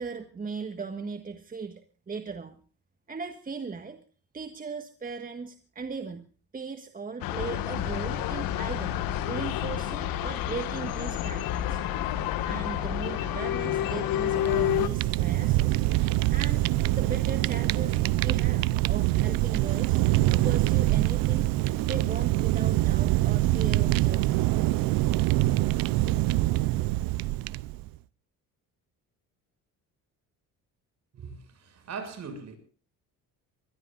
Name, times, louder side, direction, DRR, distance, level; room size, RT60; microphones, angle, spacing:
voice 1, 0.0-2.6 3.1-4.0 4.3-11.8 12.4-15.8 16.3-16.7 16.9-20.0 20.3-21.5 21.8-24.5, right 4 dB, 25° right, 1.6 m, -38 dB
sound 1, 7.2-14.9, left 11 dB, 90° left, 1.7 m, -29 dB
Bowed string instrument, 13.3-18.9, left 6 dB, 55° left, 4.7 m, -49 dB
Fire, 14.3-27.9, right 17 dB, 85° right, 0.7 m, -25 dB
voice 2, 31.1-32.6, right 5 dB, 50° right, 6.8 m, -40 dB
23.0 x 20.0 x 2.5 m
cardioid pair, 115°, 34 cm